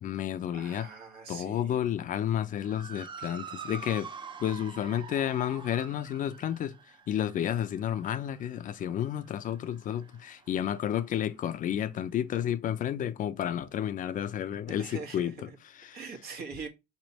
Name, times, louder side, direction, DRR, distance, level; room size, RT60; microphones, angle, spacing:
voice 1, 0.0-0.9 1.3-4.1 4.4-6.8 7.1-16.1, left 10 dB, 50° left, 0.5 m, -31 dB
voice 2, 0.5-1.8 14.7-15.5 15.9-16.7, right 5 dB, 70° right, 1.3 m, -42 dB
Motor vehicle (road) / Siren, 2.5-11.1, right 5 dB, 30° right, 0.6 m, -46 dB
4.3 x 3.2 x 2.8 m
cardioid pair, 110°, 17 cm